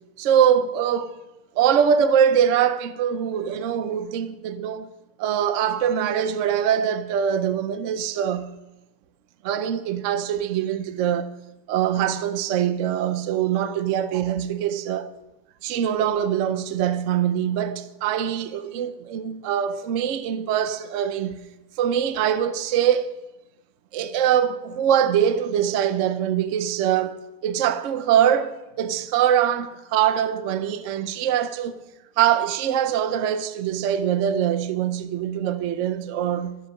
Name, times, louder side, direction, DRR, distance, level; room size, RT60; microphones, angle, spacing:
voice 1, 0.2-1.2 1.5-4.9 5.2-8.5 9.4-11.3 11.7-15.1 15.6-21.4 21.8-23.1 23.9-31.8 32.2-36.6, right 9 dB, 60° right, 0.9 m, -23 dB
13.5 x 8.0 x 5.7 m
omnidirectional pair, 1.7 m